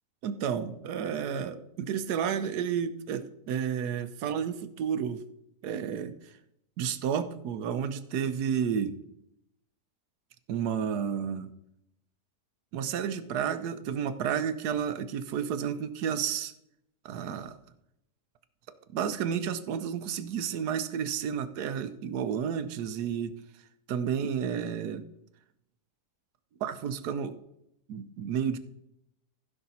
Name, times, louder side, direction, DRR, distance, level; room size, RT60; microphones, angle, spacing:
voice 1, 0.2-5.2 5.6-6.3 6.8-9.0 10.5-11.5 12.7-16.5 17.0-17.6 18.9-23.3 23.9-25.0 26.6-27.4 27.9-28.6, right 8 dB, 80° right, 12 dB, 1.3 m, -31 dB
15.5 x 5.8 x 4.1 m, 0.81 s
omnidirectional pair, 1.7 m